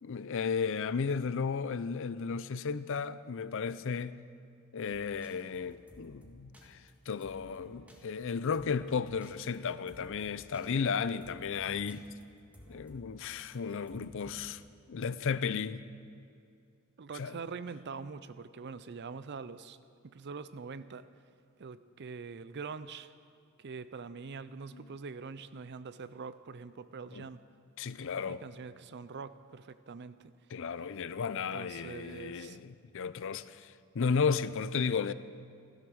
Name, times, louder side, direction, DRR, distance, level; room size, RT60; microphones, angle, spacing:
voice 1, 0.0-4.2 4.7-12.1 12.7-14.6 14.9-15.8 17.2-17.3 24.7-24.8 27.1-27.3 27.8-28.4 30.5-35.1, left 5 dB, 60° left, 0.5 m, -34 dB
sound 1, 4.9-14.6, equal, 5° right, 1.8 m, -57 dB
voice 2, 17.0-19.8 20.0-21.1 21.6-23.1 23.6-27.4 28.3-30.3 31.5-32.6, right 5 dB, 50° right, 0.5 m, -44 dB
15.5 x 12.5 x 6.3 m
head